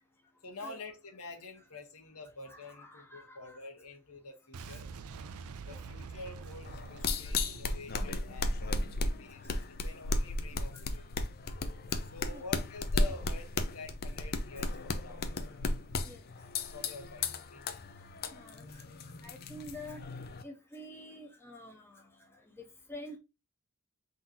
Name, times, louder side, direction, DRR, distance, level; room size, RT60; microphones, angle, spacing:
voice 1, 0.4-4.9 5.7-11.0 12.0-15.2 16.7-17.8, left 3 dB, 80° left, 4 dB, 1.3 m, -48 dB
voice 2, 2.4-3.6 4.7-4.8 5.7-5.8 7.2-7.3 9.5-9.6 10.7-10.8 12.2-12.4 16.0-16.2 18.3-18.9 19.2-20.0 20.4-23.2, left 1 dB, 10° left, 3 dB, 0.8 m, -48 dB
Boom, 4.5-9.5, right 4 dB, 75° right, 0.4 m, -47 dB
sound 1, 6.6-20.4, left 2 dB, 45° left, 0.5 m, -35 dB
3.9 x 3.0 x 3.8 m, 0.26 s
head